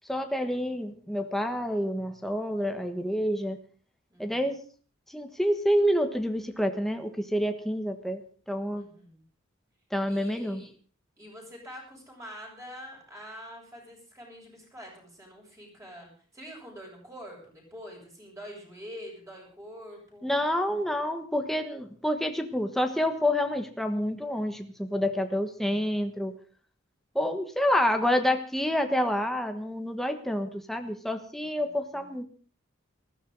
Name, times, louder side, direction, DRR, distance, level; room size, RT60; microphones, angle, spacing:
voice 1, 0.1-3.6 4.2-4.6 5.1-8.9 9.9-10.7 20.2-26.4 27.1-32.2, equal, ahead, 5 dB, 1.3 m, -28 dB
voice 2, 4.1-4.5 8.7-9.2 10.1-10.7 11.2-20.3 25.6-25.9 31.4-31.7, equal, 15° right, -1 dB, 7.4 m, -46 dB
19.5 x 15.0 x 4.0 m, 0.40 s
head